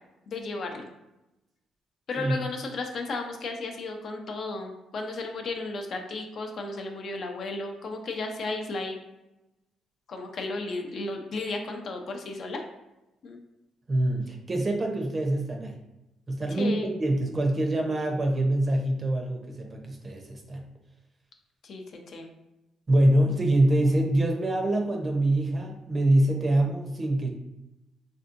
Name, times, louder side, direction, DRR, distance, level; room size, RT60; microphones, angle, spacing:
voice 1, 0.3-0.9 2.1-9.0 10.1-12.6 13.2-13.4 16.5-16.9 21.6-22.3, left 3 dB, 60° left, 3 dB, 0.5 m, -34 dB
voice 2, 13.9-15.8 16.3-20.6 22.9-27.3, right 1 dB, 35° right, 2 dB, 0.6 m, -25 dB
3.4 x 2.6 x 2.5 m, 0.95 s
cardioid pair, 90°, 0 cm